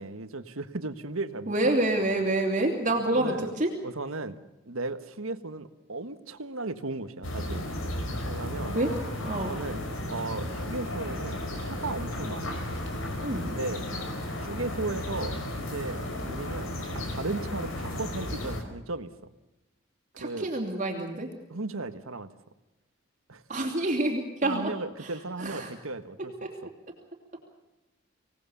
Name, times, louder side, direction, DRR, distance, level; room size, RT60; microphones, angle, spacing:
voice 1, 0.0-1.6 1.8-2.2 3.1-3.5 3.8-7.6 8.2-8.8 9.3-12.6 13.4-13.8 14.3-19.1 20.2-20.5 21.5-22.3 23.3-23.4 24.4-26.3 26.6-26.7, right 2 dB, 85° right, 11 dB, 1.5 m, -36 dB
voice 2, 1.5-3.7 8.7-8.9 9.2-9.5 13.2-13.5 20.2-21.3 23.5-24.7 25.0-25.1 25.4-25.7 26.4-26.5, right 1 dB, 35° right, 1 dB, 3.0 m, -27 dB
sound 1, 7.2-18.6, left 1 dB, 85° left, 4.6 m, -34 dB
25.5 x 18.5 x 7.2 m, 0.99 s
head